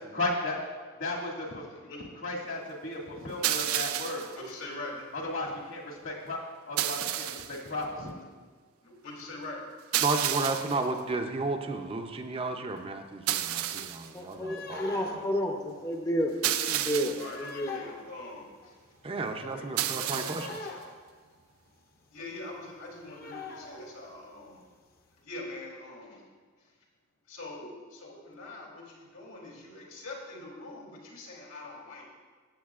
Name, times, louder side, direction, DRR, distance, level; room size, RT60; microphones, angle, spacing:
voice 1, 0.1-0.6 1.0-1.6 2.2-4.3 5.1-6.4 6.7-8.2, left 2 dB, 65° left, -2 dB, 1.9 m, -34 dB
sound 1, 3.4-4.4 6.8-7.6 9.9-10.9 13.3-14.1 16.4-17.4 19.8-20.6, right 12 dB, 80° right, 0.4 m, -31 dB
voice 2, 4.3-5.1 8.0-8.1 8.8-9.6 16.8-18.8 19.4-20.4 20.7-20.8 22.1-24.7 25.2-26.3 27.3-32.0, left 2 dB, 85° left, -3 dB, 2.8 m, -43 dB
voice 3, 10.0-15.2 19.0-20.6, right 3 dB, 25° right, 5 dB, 0.5 m, -33 dB
sound 2, 13.7-13.9 14.3-21.7 22.0-22.3 22.6-22.7 22.9-24.2 24.5-24.6 25.0-25.1, left 3 dB, 45° left, 0.8 m, -44 dB
voice 4, 14.1-17.8, equal, 15° left, 1 dB, 0.6 m, -31 dB
15.0 x 8.1 x 2.4 m, 1.5 s
head